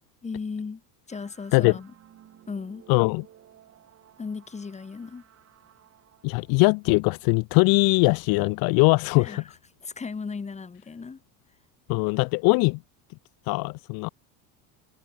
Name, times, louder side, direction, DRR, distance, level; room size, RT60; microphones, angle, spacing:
voice 1, 0.2-0.8 1.1-1.9 2.5-2.8 4.2-5.2 9.1-9.4 9.8-11.2, left 5 dB, 15° left, 4.8 m, -36 dB
sound 1, 1.1-7.9, right 10 dB, 35° right, 4.8 m, -56 dB
voice 2, 2.9-3.3 6.2-9.4 11.9-12.8 13.5-14.1, left 29 dB, 60° left, 0.7 m, -21 dB
cardioid pair, 150°, 42 cm